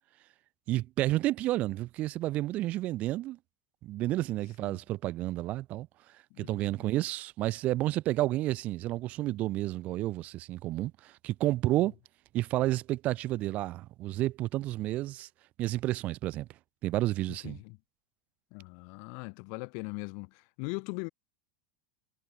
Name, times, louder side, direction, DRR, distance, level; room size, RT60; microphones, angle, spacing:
voice 1, 0.7-3.4 3.8-5.9 6.4-11.9 12.3-15.3 15.6-16.5 16.8-17.6, right 16 dB, 40° right, 7.2 m, -31 dB
voice 2, 6.3-6.9 11.8-11.9 17.3-17.8 18.5-21.1, left 40 dB or more, 55° left, 7.0 m, -41 dB
supercardioid pair, 150°, 4 cm